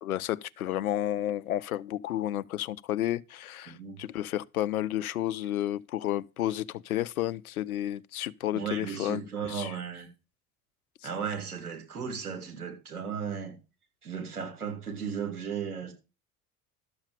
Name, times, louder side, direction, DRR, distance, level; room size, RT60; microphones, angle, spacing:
voice 1, 0.0-9.7, left 12 dB, 75° left, 0.7 m, -31 dB
voice 2, 3.7-4.0 8.5-10.1 11.0-13.6 14.0-15.9, right 7 dB, 80° right, 3.1 m, -35 dB
12.5 x 7.3 x 5.1 m
figure-of-eight pair, 60°, 44 cm